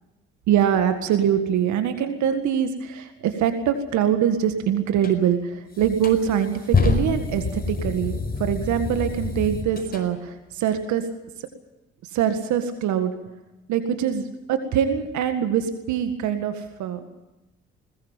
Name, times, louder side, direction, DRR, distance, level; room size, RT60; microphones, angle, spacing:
voice 1, 0.5-11.1 12.0-13.1 13.7-17.0, right 9 dB, 70° right, 8 dB, 1.9 m, -23 dB
sound 1, 5.0-5.2 5.8-10.1, left 4 dB, 30° left, 4.9 m, -26 dB
20.5 x 20.5 x 7.4 m, 0.96 s
hypercardioid pair, 45°, 30 cm